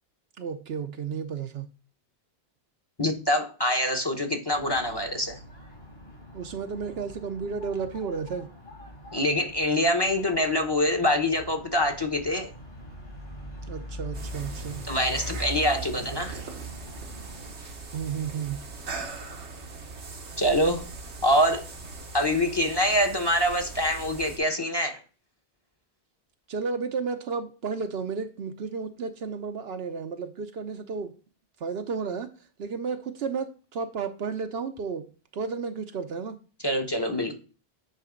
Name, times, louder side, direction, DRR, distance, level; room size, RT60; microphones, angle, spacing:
voice 1, 0.4-1.7 6.3-8.5 13.7-14.8 17.9-18.6 26.5-31.1 31.6-32.3 32.6-35.1 35.3-36.4, right 5 dB, 65° right, 0.9 m, -32 dB
voice 2, 3.0-5.4 9.1-12.5 14.9-16.4 20.4-20.8 21.2-21.7 22.1-25.0 36.6-37.4, left 1 dB, 25° left, 0.9 m, -25 dB
sound 1, 4.5-17.5, right 1 dB, 60° left, 3.3 m, -42 dB
sound 2, 14.1-24.4, right 3 dB, 85° right, 1.5 m, -40 dB
9.1 x 3.3 x 5.1 m
omnidirectional pair, 1.1 m